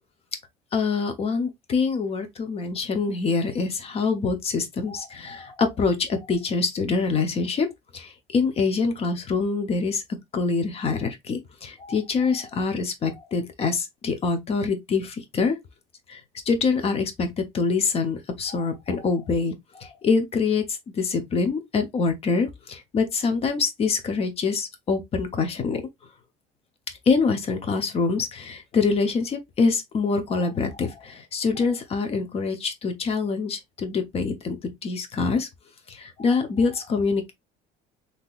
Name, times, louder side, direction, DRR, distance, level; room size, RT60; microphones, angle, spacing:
voice 1, 0.7-7.7 7.9-10.0 10.3-15.6 16.1-16.2 16.5-25.8 27.1-35.5 35.9-37.3, left 4 dB, 35° left, 0.8 m, -25 dB
3.7 x 2.8 x 2.4 m
cardioid pair, 125°, 17 cm